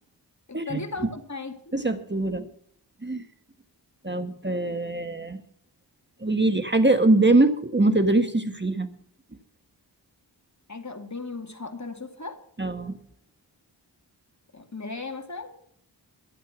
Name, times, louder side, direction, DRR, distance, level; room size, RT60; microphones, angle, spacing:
voice 1, 0.5-1.7 10.7-12.4 14.5-15.5, left 3 dB, 40° left, 5 dB, 2.3 m, -36 dB
voice 2, 1.7-2.5 3.0-3.2 4.0-5.4 6.2-8.9 12.6-13.0, right 2 dB, 25° right, 8 dB, 1.5 m, -22 dB
12.0 x 11.0 x 6.1 m, 0.64 s
wide cardioid pair, 45°, 44 cm